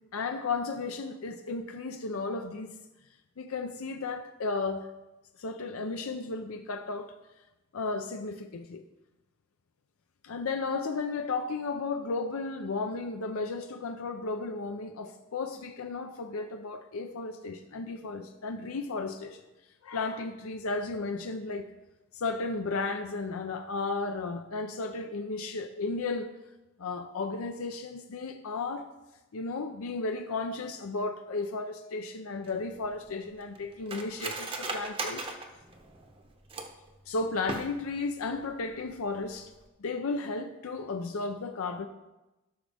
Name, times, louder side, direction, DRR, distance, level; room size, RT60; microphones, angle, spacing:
voice 1, 0.1-2.7 3.4-4.9 5.4-7.1 7.7-8.8 10.2-19.4 19.8-21.7 22.1-26.3 26.8-28.9 29.3-35.3 37.1-39.5 39.8-41.9, left 3 dB, 80° left, 6 dB, 0.5 m, -34 dB
Cutlery silverware, 32.4-36.9 37.4-38.1 38.4-38.5 38.8-39.2 39.5-39.7, right 3 dB, 25° right, 0.8 m, -38 dB
12.5 x 6.2 x 3.4 m, 1.0 s
head